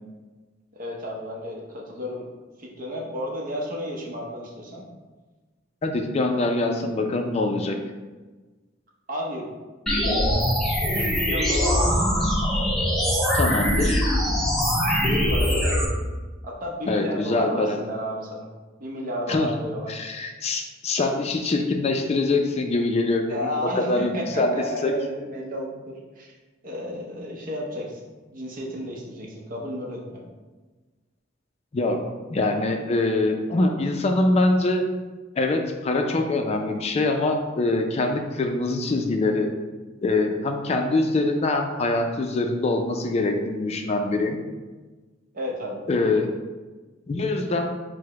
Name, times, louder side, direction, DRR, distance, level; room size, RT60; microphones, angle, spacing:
voice 1, 0.7-2.3 2.6-4.8 9.1-9.5 10.7-12.3 15.0-15.8 16.4-18.5 18.8-19.9 23.3-26.3 26.6-28.0 28.3-30.2 45.3-45.8, equal, 45° right, -1 dB, 0.7 m, -32 dB
voice 2, 5.8-7.8 13.3-14.1 16.9-17.8 19.3-19.5 19.9-23.5 23.8-24.5 24.8-24.9 31.7-32.0 32.3-34.8 35.4-39.5 40.0-44.4 45.9-46.3 47.1-47.8, left 2 dB, 35° left, 4 dB, 0.4 m, -24 dB
sound 1, 9.9-15.9, equal, ahead, 0.8 m, -22 dB
4.7 x 2.1 x 4.7 m, 1.3 s
head